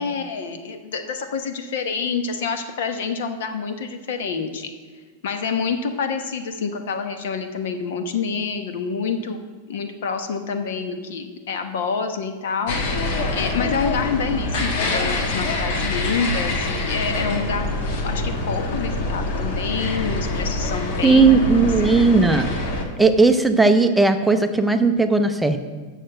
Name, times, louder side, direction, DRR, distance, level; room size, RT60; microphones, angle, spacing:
voice 1, 0.0-4.7 5.2-9.4 9.7-12.7 13.3-17.7 18.0-21.4 21.8-22.0, left 5 dB, 75° left, 7 dB, 1.1 m, -27 dB
sound 1, 12.7-22.8, left 2 dB, 50° left, 1.4 m, -25 dB
voice 2, 21.0-22.5 23.0-25.6, right 4 dB, 5° right, 7 dB, 0.4 m, -16 dB
6.7 x 6.4 x 7.7 m, 1.5 s
supercardioid pair, 175°, 0 cm